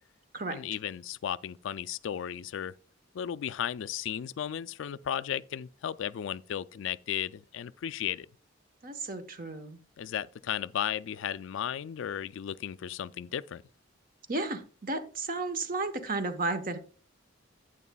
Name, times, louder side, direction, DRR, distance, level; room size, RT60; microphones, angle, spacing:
voice 1, 0.5-2.7 3.1-8.3 10.0-13.6, left 9 dB, 70° left, 0.3 m, -35 dB
voice 2, 8.8-9.8 14.3-16.8, right 3 dB, 45° right, 1.0 m, -33 dB
11.0 x 9.2 x 2.3 m
head